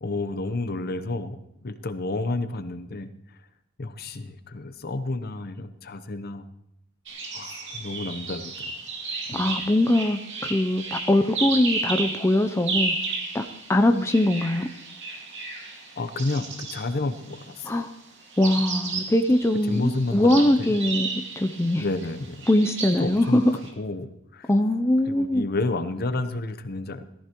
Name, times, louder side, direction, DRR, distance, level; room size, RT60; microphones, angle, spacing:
voice 1, 0.0-3.1 3.8-6.5 7.3-8.7 9.3-9.5 16.0-17.8 19.7-20.7 21.8-22.5 23.0-24.5 25.1-27.0, left 2 dB, 50° left, 10 dB, 0.8 m, -30 dB
sound 1, 7.1-17.6 18.3-23.7, right 3 dB, 60° right, 2.5 m, -33 dB
voice 2, 9.3-12.9 13.3-14.7 17.6-17.9 18.4-21.1 21.4-21.8 22.5-23.4 24.5-25.4, left 1 dB, 15° left, 6 dB, 0.5 m, -22 dB
18.0 x 14.0 x 3.0 m, 0.80 s
head